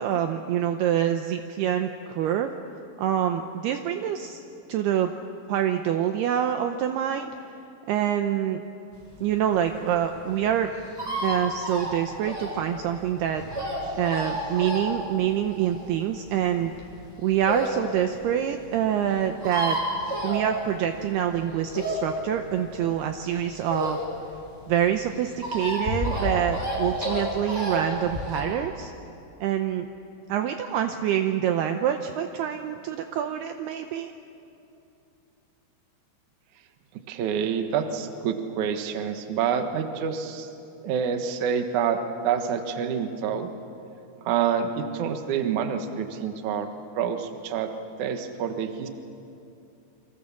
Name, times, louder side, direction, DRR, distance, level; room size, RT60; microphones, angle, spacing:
voice 1, 0.0-2.5 3.0-4.4 4.7-5.1 5.5-7.3 7.9-8.6 9.2-10.7 11.2-13.4 13.9-16.7 17.2-19.8 20.2-24.0 24.7-28.9 29.4-29.9 30.3-34.1, right 10 dB, 75° right, 6 dB, 2.6 m, -26 dB
sound 1, 9.2-17.8 18.2-18.3 18.5-18.6 18.8-18.9 19.1-21.0 21.3-24.3 24.6-28.4, equal, 5° right, 6.9 m, -30 dB
voice 2, 37.1-40.5 40.8-43.5 44.2-46.7 47.0-47.7 48.0-48.9, right 7 dB, 60° right, 6 dB, 2.2 m, -27 dB
28.5 x 25.0 x 7.3 m, 2.7 s
omnidirectional pair, 5.3 m